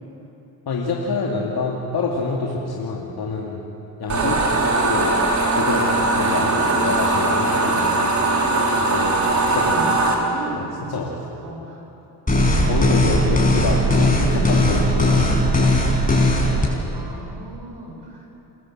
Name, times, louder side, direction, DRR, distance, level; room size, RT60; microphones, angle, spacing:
voice 1, 0.7-3.7 4.0-5.2 5.5-8.2 8.8-10.0 10.6-11.4 12.7-15.7, left 3 dB, 55° left, -2 dB, 2.6 m, -27 dB
sound 1, 4.1-10.1, right 2 dB, 40° right, 4.5 m, -20 dB
voice 2, 9.5-11.0 11.4-11.8 13.6-13.8 14.3-14.5 15.1-15.4 16.9-18.3, right 2 dB, 65° right, 1 dB, 6.0 m, -34 dB
sound 2, 12.3-16.7, left 1 dB, 20° left, 5.9 m, -18 dB
28.5 x 14.0 x 7.9 m, 2.9 s
supercardioid pair, 55°, 44 cm